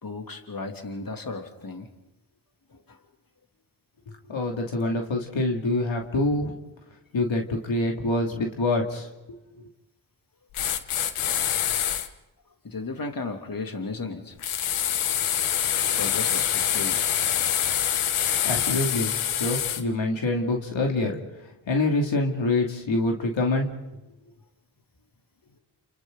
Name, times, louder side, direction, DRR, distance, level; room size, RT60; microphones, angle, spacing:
voice 1, 0.0-1.9 2.7-3.0 12.6-14.4 16.0-17.3, left 3 dB, 45° left, 4 dB, 2.9 m, -35 dB
voice 2, 4.3-6.5 7.1-9.7 18.4-21.2 21.7-23.7, left 2 dB, 65° left, 1 dB, 2.9 m, -26 dB
sound 1, 10.5-12.1 14.4-19.8, left 10 dB, 85° left, 1.2 m, -25 dB
29.5 x 29.0 x 4.0 m, 1.0 s
supercardioid pair, 40°, 48 cm